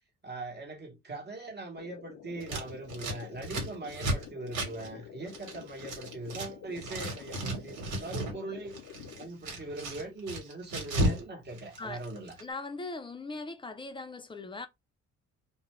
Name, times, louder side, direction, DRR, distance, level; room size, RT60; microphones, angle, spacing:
voice 1, 0.2-8.8 9.2-12.4, right 2 dB, 35° right, 1.0 m, -41 dB
sound 1, 1.8-9.3, left 9 dB, 70° left, 0.6 m, -48 dB
Scissors, 2.4-6.5 6.7-8.4 8.7-11.2 11.5-12.4, right 1 dB, 85° right, 1.3 m, -34 dB
voice 2, 12.4-14.7, left 3 dB, 15° left, 0.4 m, -39 dB
2.4 x 2.1 x 3.0 m
cardioid pair, 90°, 30 cm